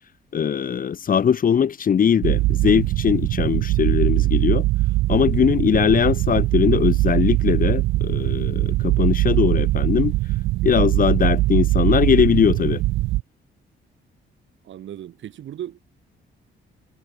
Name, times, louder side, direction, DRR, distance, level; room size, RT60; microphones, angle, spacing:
voice 1, 0.3-4.6 5.1-10.1 10.6-12.8, left 7 dB, 45° left, 1.0 m, -20 dB
sound 1, 2.2-13.2, right 18 dB, 90° right, 0.6 m, -21 dB
voice 2, 14.6-15.8, right 11 dB, 70° right, 4.1 m, -36 dB
cardioid pair, 90°, 20 cm